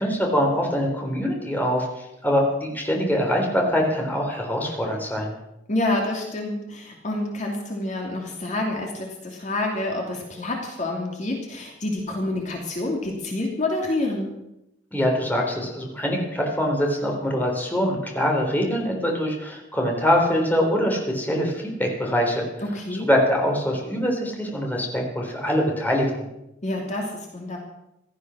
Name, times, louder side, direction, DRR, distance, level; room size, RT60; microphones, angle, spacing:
voice 1, 0.0-5.3 14.9-22.5 23.0-26.1, equal, 10° left, 0 dB, 3.7 m, -23 dB
voice 2, 5.7-14.3 22.6-23.1 26.6-27.6, left 2 dB, 40° left, 0 dB, 2.9 m, -28 dB
16.5 x 13.5 x 6.3 m, 0.88 s
head